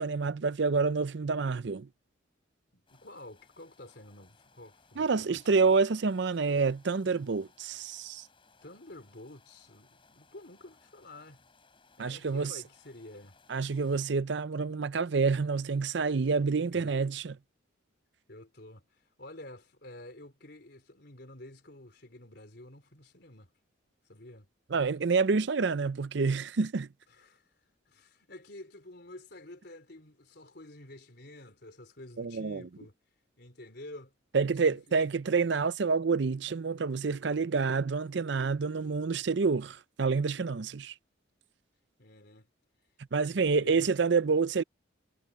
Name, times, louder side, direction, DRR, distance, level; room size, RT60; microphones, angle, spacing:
voice 1, 0.0-1.9 5.0-8.2 12.0-12.5 13.5-17.4 24.7-26.9 32.2-32.6 34.3-40.9 43.1-44.6, right 4 dB, 60° right, 0.5 m, -28 dB
voice 2, 2.7-5.7 8.6-11.4 12.0-13.4 16.7-16.9 18.3-23.6 24.0-24.5 27.1-33.0 33.4-34.8 42.0-42.5 43.3-43.9, left 1 dB, 55° left, 4.2 m, -50 dB
sound 1, 2.9-14.1, left 4 dB, 25° left, 5.6 m, -64 dB
head